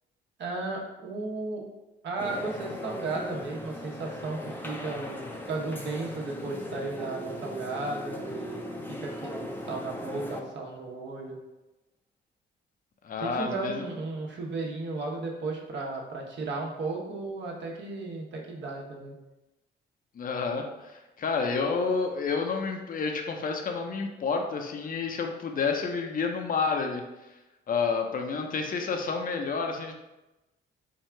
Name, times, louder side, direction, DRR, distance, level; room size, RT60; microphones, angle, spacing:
voice 1, 0.4-1.6 2.0-8.7 9.0-11.4 13.2-19.1, right 3 dB, 65° right, -1 dB, 1.1 m, -35 dB
sound 1, 2.2-10.6, equal, 10° left, 0.6 m, -38 dB
voice 2, 13.0-13.8 20.1-27.0 27.7-30.0, left 5 dB, 45° left, 3 dB, 0.7 m, -29 dB
4.6 x 2.4 x 4.4 m, 1.0 s
cardioid pair, 90°, 20 cm